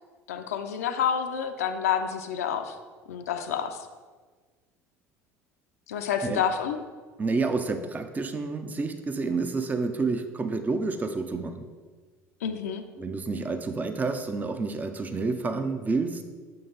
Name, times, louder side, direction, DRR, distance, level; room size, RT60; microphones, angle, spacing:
voice 1, 0.3-2.8 3.1-3.9 5.9-6.8 12.4-12.8, left 8 dB, 80° left, 5 dB, 0.4 m, -28 dB
voice 2, 7.2-11.6 13.0-16.2, right 3 dB, 20° right, 7 dB, 0.5 m, -29 dB
6.7 x 3.8 x 3.8 m, 1.4 s
hypercardioid pair, 70°, 8 cm